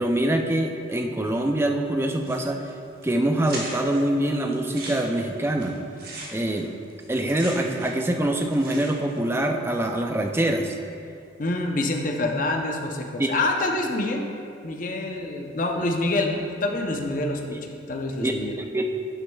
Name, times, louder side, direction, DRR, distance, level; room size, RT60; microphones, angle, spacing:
voice 1, 0.0-2.6 3.0-5.8 6.3-6.7 7.1-10.8 13.2-13.3 17.5-17.6 18.2-18.8, right 1 dB, 10° right, 3 dB, 0.4 m, -24 dB
sound 1, 2.2-2.7 3.0-3.1 3.4-4.0 4.5-8.1 8.3-9.2, right 2 dB, 50° right, 1.2 m, -38 dB
voice 2, 11.4-14.2 14.6-18.5, left 2 dB, 45° left, 2 dB, 0.6 m, -26 dB
11.5 x 6.3 x 2.3 m, 2.4 s
head